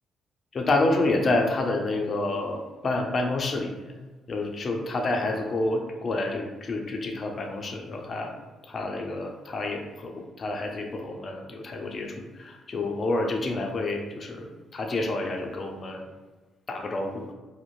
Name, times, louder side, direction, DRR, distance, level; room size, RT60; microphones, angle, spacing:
voice 1, 0.5-4.0 4.3-8.3 8.7-16.0 16.7-17.2, left 2 dB, 45° left, 2 dB, 0.4 m, -28 dB
2.5 x 2.0 x 3.0 m, 1.2 s
cardioid pair, 90°, 0 cm